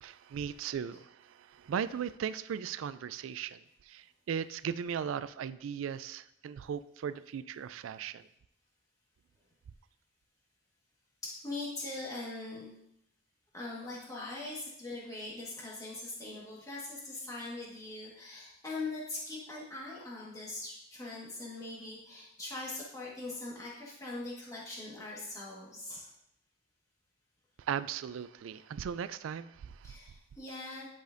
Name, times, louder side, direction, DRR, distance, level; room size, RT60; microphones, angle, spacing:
voice 1, 0.0-8.3 27.6-30.0, right 8 dB, 85° right, 16 dB, 0.3 m, -38 dB
voice 2, 11.2-12.7 13.5-26.1 29.8-30.9, left 2 dB, 15° left, -6 dB, 1.5 m, -41 dB
10.5 x 5.0 x 2.6 m, 0.77 s
head